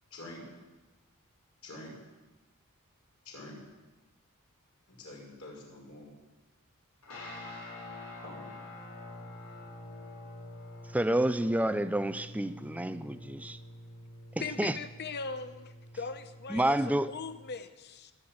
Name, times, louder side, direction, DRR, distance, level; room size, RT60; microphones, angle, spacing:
voice 1, 0.1-0.5 1.6-1.9 3.2-3.6 4.9-6.1 8.2-8.5, left 1 dB, 65° left, -2 dB, 5.7 m, -46 dB
sound 1, 7.0-17.5, left 1 dB, 90° left, 6.1 m, -47 dB
voice 2, 10.9-13.6 14.6-14.8 16.5-17.1, right 1 dB, 5° right, 13 dB, 0.5 m, -29 dB
voice 3, 14.4-18.1, left 4 dB, 50° left, 10 dB, 0.9 m, -40 dB
20.5 x 8.1 x 8.7 m, 1.1 s
head